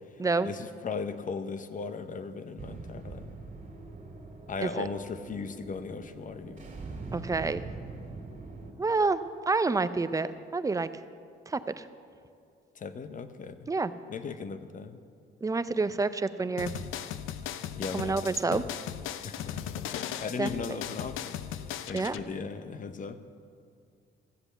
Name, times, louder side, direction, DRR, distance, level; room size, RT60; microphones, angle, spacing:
voice 1, 0.4-3.3 4.5-6.7 12.8-13.7 14.1-15.0 17.7-18.6 19.2-21.4 21.9-23.2, left 5 dB, 40° left, 11 dB, 0.8 m, -37 dB
sound 1, 2.6-8.7, right 3 dB, 40° right, 2.5 m, -43 dB
voice 2, 7.1-7.6 8.8-10.9 11.5-11.9 13.7-13.9 15.4-16.7 17.9-18.6 20.4-20.8 21.9-22.2, right 3 dB, 15° right, 12 dB, 0.5 m, -28 dB
sound 2, 16.6-22.2, left 10 dB, 90° left, 0.5 m, -37 dB
14.0 x 7.9 x 6.9 m, 2.3 s
cardioid pair, 90°, 20 cm